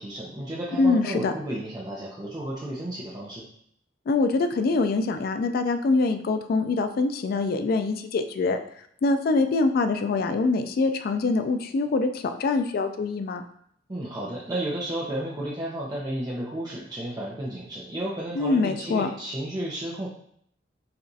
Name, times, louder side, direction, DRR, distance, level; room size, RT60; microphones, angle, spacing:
voice 1, 0.0-3.5 13.9-20.1, right 1 dB, 20° right, -6 dB, 0.6 m, -32 dB
voice 2, 0.8-1.3 4.1-8.6 9.0-13.4 18.4-19.1, left 3 dB, 55° left, 8 dB, 0.3 m, -24 dB
6.7 x 2.4 x 2.7 m, 0.67 s
head